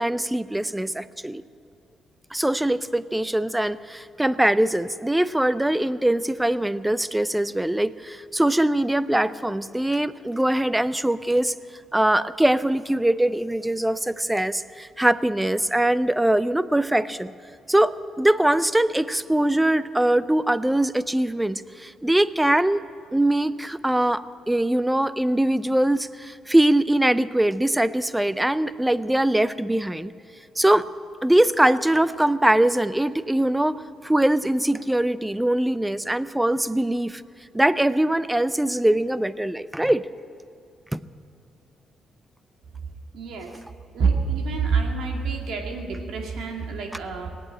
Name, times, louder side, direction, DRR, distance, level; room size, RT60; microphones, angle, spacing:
voice 1, 0.0-1.4 2.3-11.5 11.9-17.3 17.7-22.8 23.1-30.1 30.6-30.9 31.2-37.2 37.5-40.0 40.9-41.0, right 1 dB, 5° right, 16 dB, 0.5 m, -22 dB
voice 2, 43.1-43.5 43.9-47.3, right 5 dB, 75° right, 2 dB, 2.3 m, -26 dB
18.5 x 8.6 x 8.7 m, 2.7 s
cardioid pair, 90°, 0 cm